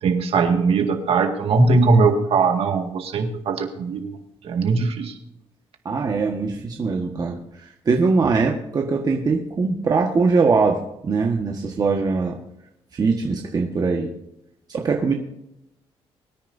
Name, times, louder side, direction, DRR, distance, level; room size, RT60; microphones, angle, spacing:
voice 1, 0.0-4.2 4.4-5.1, right 4 dB, 70° right, 4 dB, 2.0 m, -20 dB
voice 2, 5.8-12.4 12.9-14.1 14.7-15.1, right 4 dB, 40° right, 1 dB, 1.5 m, -22 dB
23.0 x 10.5 x 2.7 m, 0.85 s
cardioid pair, 120°, 10 cm